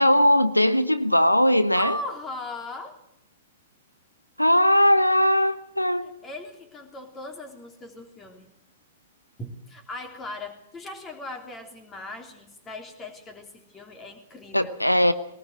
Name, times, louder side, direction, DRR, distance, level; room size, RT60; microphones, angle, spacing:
voice 1, 0.0-2.0 4.4-6.1 14.5-15.1, equal, 90° left, 12 dB, 0.9 m, -19 dB
voice 2, 1.8-3.0 6.0-8.5 9.4-14.8, left 1 dB, 15° left, 4 dB, 3.5 m, -38 dB
21.0 x 19.5 x 6.4 m, 0.80 s
figure-of-eight pair, 110°, 0 cm